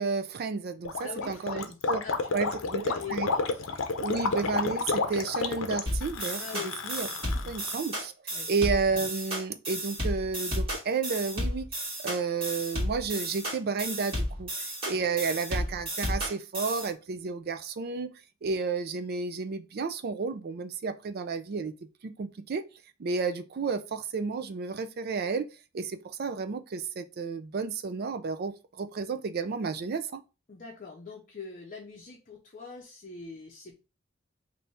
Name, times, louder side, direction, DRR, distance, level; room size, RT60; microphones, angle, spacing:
voice 1, 0.0-2.0 2.3-3.3 4.0-6.4 6.8-7.1 7.5-8.1 8.5-11.7 12.0-14.5 14.8-18.1 18.4-21.7 22.0-22.6 23.0-25.5 25.7-30.2, right 4 dB, 50° right, 0.4 m, -31 dB
Gurgling, 0.8-7.7, left 4 dB, 90° left, 0.6 m, -31 dB
voice 2, 1.0-4.1 6.4-6.7 7.4-7.6 8.3-8.5 30.5-33.8, left 5 dB, 45° left, 0.7 m, -43 dB
sound 1, 5.9-16.9, equal, 30° right, 1.8 m, -33 dB
3.4 x 2.7 x 4.1 m
head